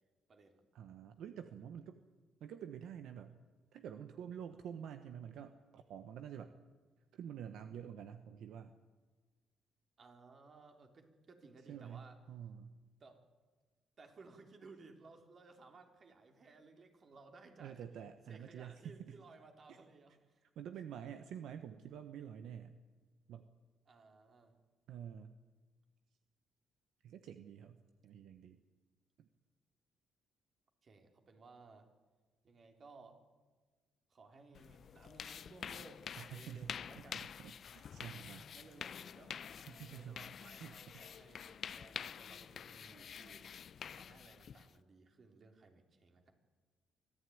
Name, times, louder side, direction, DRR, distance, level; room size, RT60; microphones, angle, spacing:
voice 1, 0.7-2.0 2.4-3.4 3.7-6.5 7.1-8.7 11.7-12.8 17.6-19.2 20.6-22.7 23.3-23.5 24.9-25.4 27.0-28.6 29.2-29.3 36.2-38.5 39.7-40.3 40.6-41.0, right 8 dB, 80° right, 8 dB, 1.1 m, -48 dB
voice 2, 10.0-12.2 13.0-13.2 14.0-17.9 18.3-20.4 23.9-24.5 30.8-31.9 32.4-33.2 34.1-37.3 38.5-39.6 39.9-43.5 43.9-46.3, right 3 dB, 45° right, 4 dB, 3.6 m, -59 dB
sound 1, 34.5-44.8, left 8 dB, 55° left, 0.7 m, -48 dB
24.0 x 15.0 x 9.5 m, 1.4 s
cardioid pair, 90°, 0 cm